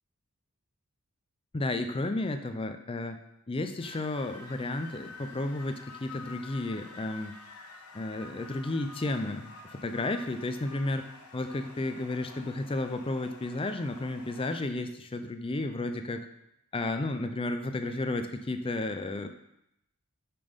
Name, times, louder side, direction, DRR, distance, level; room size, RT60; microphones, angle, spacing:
voice 1, 1.5-3.2 3.5-7.3 7.9-16.3 16.7-19.3, left 2 dB, 25° left, 8 dB, 0.5 m, -32 dB
sound 1, 3.8-14.6, left 3 dB, 80° left, 1.2 m, -49 dB
7.0 x 6.0 x 5.2 m, 0.82 s
head